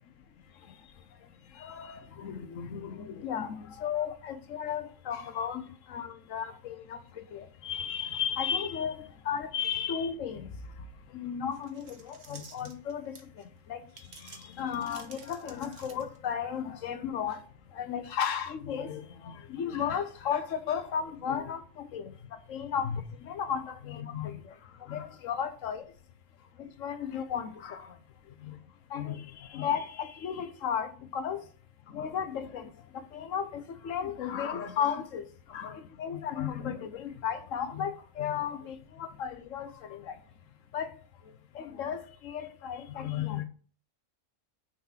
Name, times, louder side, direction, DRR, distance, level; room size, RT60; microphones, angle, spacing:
voice 1, 1.6-5.6 5.9-9.0 9.2-10.5 11.1-13.2 13.7-13.8 14.6-17.4 17.7-21.6 21.9-22.1 22.5-24.4 24.9-25.9 26.6-27.9 28.4-28.5 28.9-31.4 31.9-32.7 32.9-40.2 40.7-40.9 41.5-43.4, left 8 dB, 75° left, 1.2 m, -34 dB
sound 1, 11.5-13.4 13.9-16.3, right 5 dB, 60° right, 1.3 m, -51 dB
6.3 x 4.2 x 5.6 m
omnidirectional pair, 1.3 m